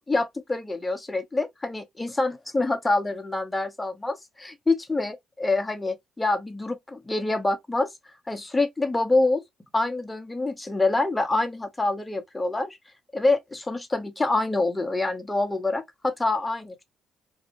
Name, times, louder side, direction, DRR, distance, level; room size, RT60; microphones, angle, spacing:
voice 1, 0.1-7.9 8.3-9.4 9.7-12.8 13.1-16.8, left 2 dB, 15° left, 0.8 m, -26 dB
2.6 x 2.3 x 2.9 m
supercardioid pair, 70°, 0 cm